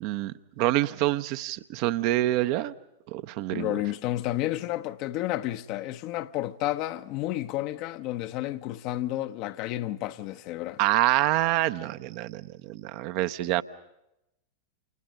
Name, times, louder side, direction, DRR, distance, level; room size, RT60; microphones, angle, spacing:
voice 1, 0.0-2.7 3.1-3.7 10.8-13.6, right 15 dB, 45° right, 0.9 m, -26 dB
voice 2, 3.5-10.8, left 15 dB, 40° left, 1.0 m, -31 dB
30.0 x 28.5 x 5.2 m
figure-of-eight pair, 90°, 0 cm